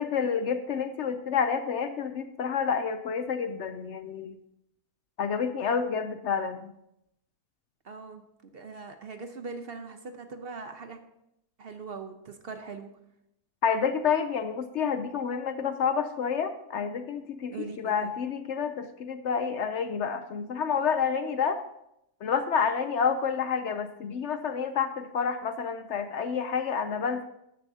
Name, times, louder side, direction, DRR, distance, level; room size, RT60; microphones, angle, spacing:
voice 1, 0.0-4.4 5.2-6.7 13.6-21.6 22.2-27.2, left 6 dB, 65° left, 10 dB, 0.8 m, -29 dB
voice 2, 7.8-8.2 8.5-11.0 11.6-12.9 17.5-18.1, right 4 dB, 50° right, 7 dB, 0.8 m, -41 dB
13.5 x 10.0 x 2.8 m, 0.80 s
omnidirectional pair, 1.6 m